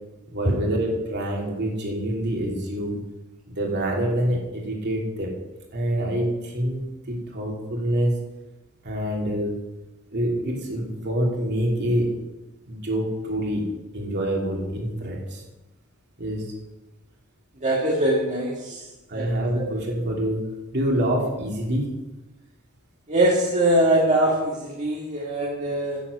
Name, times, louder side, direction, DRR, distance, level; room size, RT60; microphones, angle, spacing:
voice 1, 0.3-3.0 3.5-5.3 5.7-8.2 8.8-9.6 10.1-12.1 12.6-13.6 13.9-15.4 16.2-16.5 19.1-20.4 20.7-21.9, right 1 dB, 50° right, -1 dB, 2.8 m, -26 dB
voice 2, 17.6-18.8 19.1-19.3 23.1-26.0, right 1 dB, 35° right, -4 dB, 1.9 m, -22 dB
10.0 x 7.5 x 6.8 m, 1.0 s
head